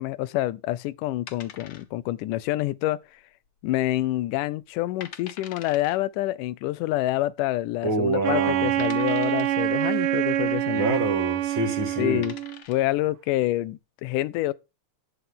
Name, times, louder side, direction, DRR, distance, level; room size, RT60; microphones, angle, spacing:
voice 1, 0.0-3.0 3.6-10.9 12.0-12.4 12.7-14.5, left 15 dB, 90° left, 2.3 m, -27 dB
sound 1, 1.3-2.2 2.5-2.6 3.2-3.6 4.0-4.1 4.6-4.7 5.0-6.0 7.1-7.2 7.8-7.9 8.8-9.6 11.4-11.6 12.0-12.9, left 8 dB, 55° left, 1.4 m, -43 dB
voice 2, 7.8-8.7 10.7-12.2, right 2 dB, 45° right, 2.5 m, -26 dB
Wind instrument woodwind instrument, 8.2-12.6, right 13 dB, 80° right, 1.2 m, -26 dB
12.0 x 9.5 x 3.7 m
omnidirectional pair, 3.6 m